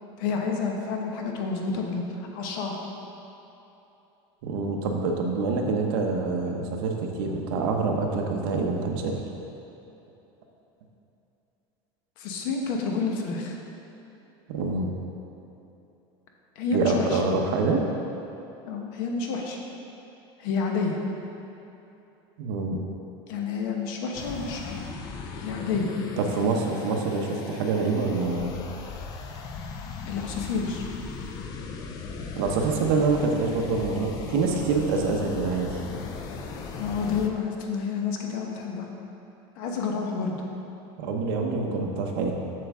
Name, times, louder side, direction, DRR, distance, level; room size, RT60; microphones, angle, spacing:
voice 1, 0.2-2.0 2.3-2.8 12.2-13.6 16.6-17.2 18.7-19.6 20.4-21.0 23.3-24.8 25.4-25.9 30.1-30.9 36.8-38.9 39.6-40.4, left 4 dB, 60° left, 1 dB, 1.0 m, -29 dB
voice 2, 4.4-9.2 14.5-14.9 16.7-17.8 22.4-22.8 26.2-28.5 32.4-35.8 41.0-42.3, right 4 dB, 65° right, 1 dB, 0.9 m, -26 dB
sound 1, 24.1-37.3, left 4 dB, 30° left, 0.4 m, -37 dB
7.7 x 6.9 x 3.6 m, 3.0 s
cardioid pair, 180°, 13 cm